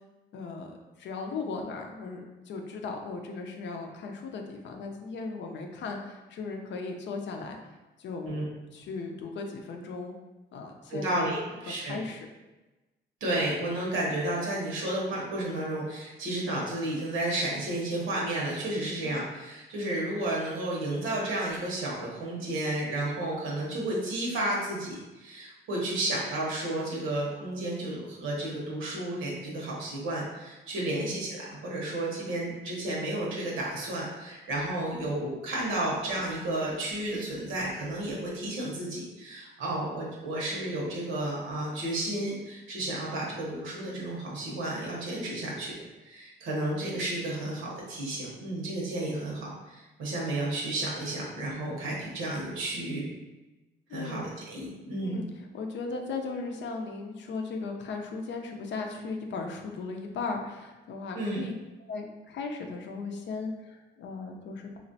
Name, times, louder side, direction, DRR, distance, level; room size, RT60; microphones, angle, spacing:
voice 1, 0.3-7.6 8.0-8.4 8.7-10.1 10.5-11.2 11.7-12.3 19.0-19.1 30.8-31.2 53.9-54.3 55.0-55.3 55.5-61.5 61.8-64.8, left 4 dB, 65° left, 3 dB, 0.5 m, -37 dB
voice 2, 10.9-12.0 13.2-45.8 46.0-53.1 53.9-55.2 61.1-61.4, right 1 dB, 85° right, -4 dB, 0.9 m, -32 dB
3.1 x 2.4 x 2.6 m, 1.1 s
cardioid pair, 90°, 20 cm